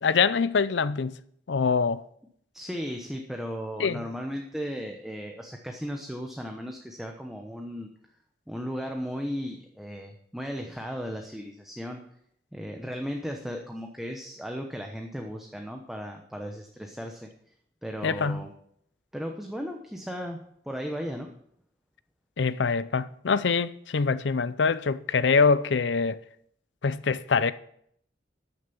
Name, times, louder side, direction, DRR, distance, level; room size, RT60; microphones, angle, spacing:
voice 1, 0.0-1.1 1.5-2.0 3.8-4.0 18.0-18.4 22.4-26.2 26.8-27.5, left 5 dB, 90° left, 0.6 m, -24 dB
voice 2, 2.5-7.9 8.5-12.0 12.5-17.3 17.8-18.5 19.1-20.4 20.7-21.3, equal, ahead, 1.0 m, -36 dB
13.0 x 6.7 x 7.0 m
head